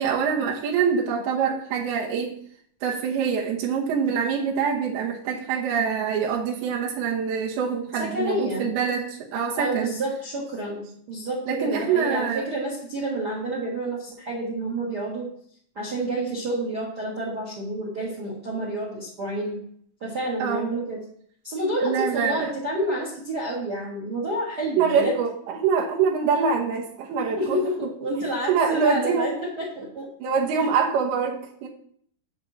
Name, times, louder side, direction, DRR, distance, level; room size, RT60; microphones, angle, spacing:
voice 1, 0.0-2.3 2.8-9.9 11.5-12.4 20.4-20.7 21.8-22.5 24.8-27.6 28.5-29.3 30.2-31.7, right 6 dB, 90° right, -1 dB, 3.0 m, -25 dB
voice 2, 7.9-8.7 9.5-15.3 15.7-19.6 20.0-21.0 21.4-25.1 27.4-30.1 30.6-30.7, right 1 dB, 65° right, -1 dB, 1.0 m, -29 dB
9.6 x 3.8 x 7.0 m, 0.63 s
omnidirectional pair, 4.4 m